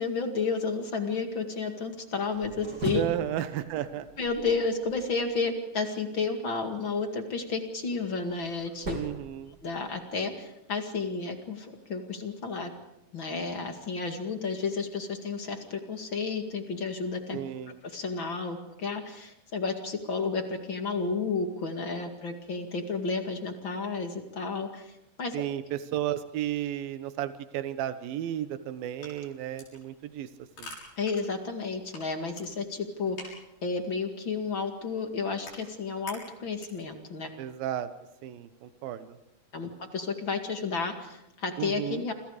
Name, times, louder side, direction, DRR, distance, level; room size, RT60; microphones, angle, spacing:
voice 1, 0.0-3.0 4.2-9.0 9.6-12.7 13.1-17.4 17.8-24.9 25.2-25.3 31.0-37.3 39.5-42.1, left 4 dB, 40° left, 5 dB, 2.5 m, -32 dB
sound 1, 2.2-5.4 7.6-10.1, right 2 dB, 30° right, 3.7 m, -40 dB
voice 2, 2.9-4.1 8.9-9.6 17.3-17.8 25.3-30.3 30.6-30.7 37.4-37.9 38.2-39.2 41.6-42.0, right 11 dB, 85° right, 11 dB, 2.8 m, -33 dB
sound 2, 28.7-36.9, left 2 dB, 80° left, 8.7 m, -50 dB
28.0 x 27.0 x 5.0 m, 0.85 s
omnidirectional pair, 4.1 m